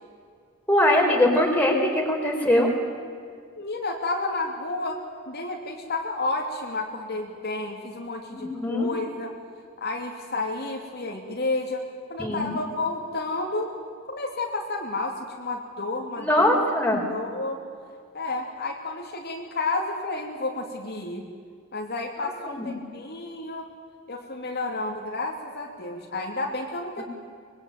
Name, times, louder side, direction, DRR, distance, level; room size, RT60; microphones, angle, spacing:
voice 1, 0.7-2.7 8.3-8.9 12.2-12.5 16.2-17.1 22.2-22.7 27.0-27.1, left 1 dB, 5° left, 0 dB, 4.6 m, -22 dB
voice 2, 3.6-9.3 9.8-13.8 14.1-16.7 17.1-17.6 18.1-21.2 21.7-23.7 24.1-27.0, left 2 dB, 50° left, 1 dB, 2.8 m, -31 dB
24.5 x 22.0 x 9.3 m, 2.2 s
head